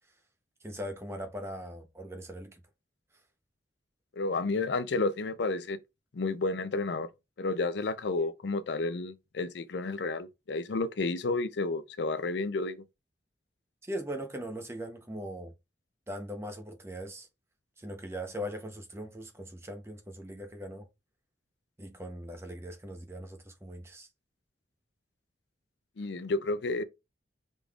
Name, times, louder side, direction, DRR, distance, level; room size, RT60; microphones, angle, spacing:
voice 1, 0.6-2.6 13.8-15.5 16.1-17.3 17.8-20.9 21.8-24.1, equal, 15° right, 0.7 m, -40 dB
voice 2, 4.1-5.8 6.1-7.1 7.4-12.8 26.0-26.8, left 3 dB, 70° left, 0.5 m, -31 dB
5.0 x 3.7 x 2.3 m
head